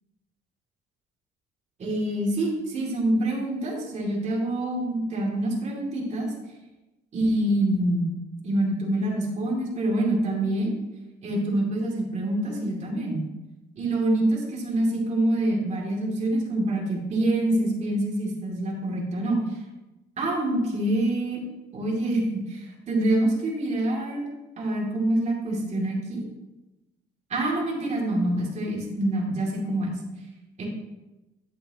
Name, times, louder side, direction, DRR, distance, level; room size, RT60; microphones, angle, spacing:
voice 1, 1.8-6.3 7.1-8.1 8.4-10.7 11.2-13.2 13.8-19.4 20.2-21.4 21.7-24.2 24.6-26.2 27.3-29.9 30.6-30.7, right 1 dB, 40° right, -2 dB, 2.6 m, -26 dB
9.4 x 8.4 x 2.9 m, 1.0 s
cardioid pair, 110°, 17 cm